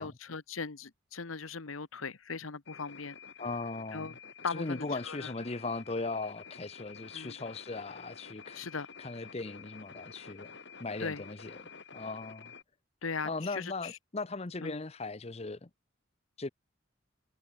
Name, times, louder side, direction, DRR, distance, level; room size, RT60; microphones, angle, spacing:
voice 1, 0.0-3.1 3.9-4.1 4.4-5.3 7.1-7.4 8.5-8.9 11.0-11.2 13.0-13.9 14.6-14.8, left 4 dB, 85° left, 1.2 m, -39 dB
sound 1, 2.7-12.6, left 6 dB, 55° left, 2.4 m, -50 dB
voice 2, 3.4-4.2 4.5-8.6 9.0-10.5 10.8-11.6 11.9-12.5 13.2-15.7 16.4-16.5, left 3 dB, 30° left, 0.7 m, -38 dB
head